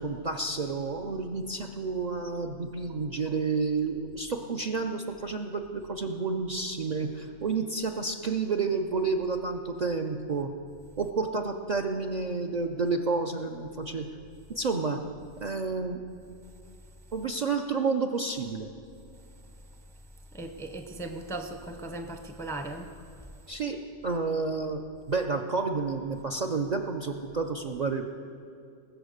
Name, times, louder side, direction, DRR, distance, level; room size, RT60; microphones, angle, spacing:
voice 1, 0.0-10.5 11.0-14.1 14.5-15.0 15.4-16.0 17.1-18.7 23.5-23.8 24.0-24.8 25.1-28.1, right 4 dB, 50° right, 4 dB, 0.5 m, -30 dB
voice 2, 20.3-22.9, right 2 dB, 5° left, 6 dB, 0.5 m, -37 dB
20.5 x 7.1 x 6.5 m, 2.5 s
omnidirectional pair, 1.3 m